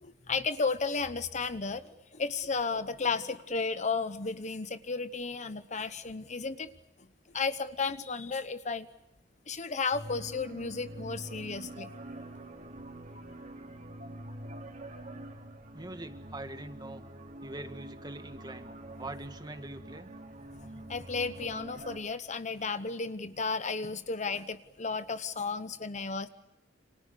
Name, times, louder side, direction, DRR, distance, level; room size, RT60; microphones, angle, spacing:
voice 1, 0.0-6.7 7.3-8.9 9.5-11.9 20.9-26.3, left 4 dB, 40° left, 12 dB, 1.0 m, -33 dB
sound 1, 9.9-22.0, right 1 dB, 45° right, 3.6 m, -45 dB
voice 2, 15.7-17.0 17.4-18.7 19.0-20.1, right 2 dB, 20° right, 8 dB, 1.9 m, -43 dB
29.0 x 26.5 x 6.8 m, 0.90 s
head